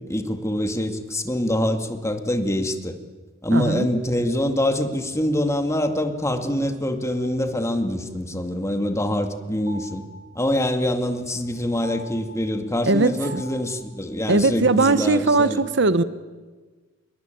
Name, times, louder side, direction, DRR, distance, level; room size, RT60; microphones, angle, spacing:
voice 1, 0.1-2.9 3.4-10.0 10.4-15.6, left 1 dB, 15° left, 6 dB, 2.1 m, -25 dB
voice 2, 3.5-3.9 12.8-13.4 14.3-16.0, right 3 dB, 60° right, 14 dB, 1.0 m, -19 dB
sound 1, 8.4-13.7, equal, 35° right, 4.7 m, -44 dB
26.5 x 22.5 x 9.1 m, 1.3 s
head